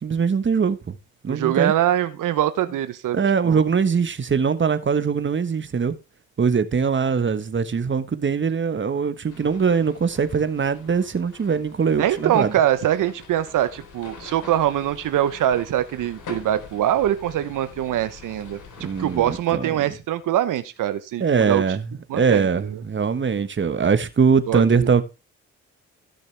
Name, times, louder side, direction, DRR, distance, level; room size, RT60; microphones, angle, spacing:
voice 1, 0.0-1.0 1.2-1.7 3.1-6.0 6.4-12.5 18.8-19.8 21.2-21.9 22.1-25.0, right 6 dB, 35° right, 1.3 m, -22 dB
voice 2, 1.3-3.2 3.4-3.6 12.0-21.6 22.1-22.8 24.5-24.9, right 12 dB, 75° right, 0.9 m, -23 dB
sound 1, 9.3-19.4, left 4 dB, 70° left, 3.9 m, -44 dB
15.5 x 6.5 x 3.4 m
cardioid pair, 70°, 32 cm